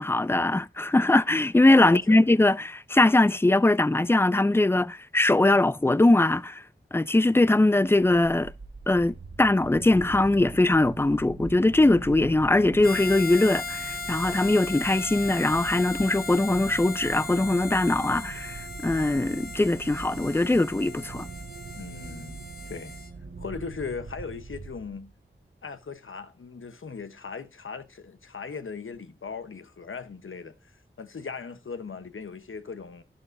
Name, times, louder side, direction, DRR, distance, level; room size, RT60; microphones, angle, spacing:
voice 1, 0.0-6.6 6.9-8.5 8.9-21.3, left 2 dB, 10° left, 0.4 m, -21 dB
voice 2, 1.8-2.2 21.7-23.0 23.4-25.1 25.6-30.7 31.0-33.0, left 5 dB, 80° left, 1.0 m, -38 dB
sound 1, 8.0-25.3, right 4 dB, 65° right, 1.4 m, -42 dB
Harmonica, 12.8-23.1, left 3 dB, 45° left, 1.8 m, -37 dB
11.5 x 11.0 x 2.6 m
wide cardioid pair, 65°, 21 cm